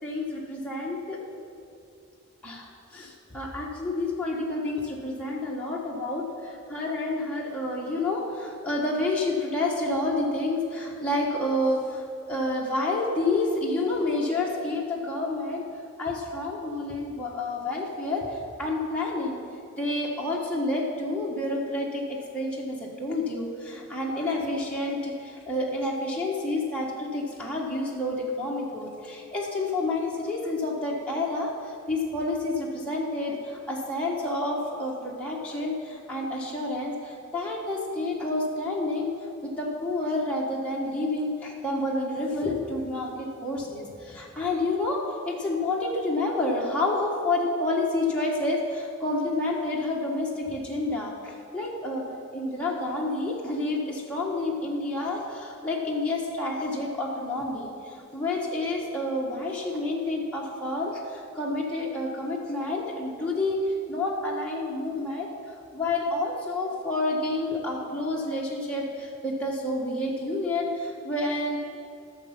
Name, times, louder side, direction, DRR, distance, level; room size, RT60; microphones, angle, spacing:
voice 1, 0.0-1.2 2.4-15.7 16.0-19.4 19.8-39.1 39.4-52.0 52.3-71.6, left 2 dB, 5° left, -5 dB, 1.3 m, -29 dB
14.0 x 6.7 x 5.9 m, 2.6 s
head